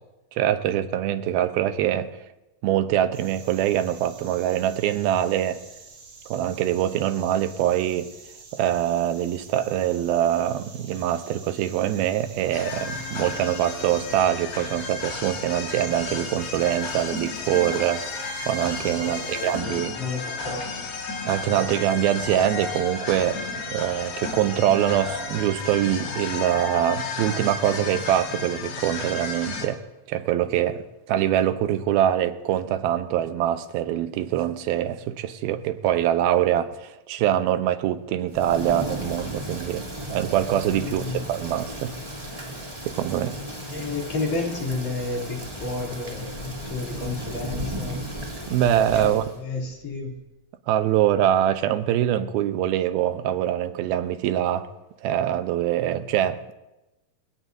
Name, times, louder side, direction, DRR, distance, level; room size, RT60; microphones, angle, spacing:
voice 1, 0.3-2.2 2.6-5.6 6.3-8.1 8.5-20.0 21.3-29.8 30.1-39.8 40.1-41.9 42.9-43.4 48.5-49.2 50.7-54.7 55.0-56.5, right 11 dB, 85° right, 2.7 m, -24 dB
sound 1, 3.1-19.6, right 4 dB, 45° right, 4.2 m, -47 dB
sound 2, 12.5-29.7, left 4 dB, 80° left, 4.3 m, -33 dB
voice 2, 19.0-20.9 21.7-21.8 40.8-41.2 43.7-48.0 49.0-50.1, left 3 dB, 50° left, 4.3 m, -31 dB
Thunder / Rain, 38.3-49.4, right 1 dB, 10° right, 2.5 m, -35 dB
29.5 x 17.5 x 2.7 m
omnidirectional pair, 4.3 m